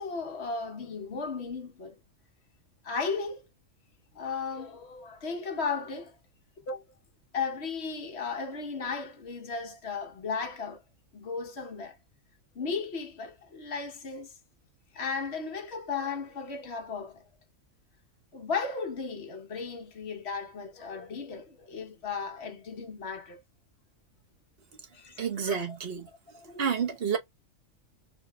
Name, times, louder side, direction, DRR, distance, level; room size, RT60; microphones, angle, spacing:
voice 1, 0.0-2.0 2.8-3.4 4.1-6.1 6.7-6.8 7.3-10.8 11.1-12.0 12.5-14.3 14.9-17.2 18.3-23.4 24.9-25.8 26.3-26.8, left 5 dB, 55° left, 1.3 m, -35 dB
voice 2, 25.2-26.1 26.6-27.2, right 7 dB, 50° right, 1.2 m, -29 dB
4.1 x 3.1 x 2.3 m
omnidirectional pair, 1.4 m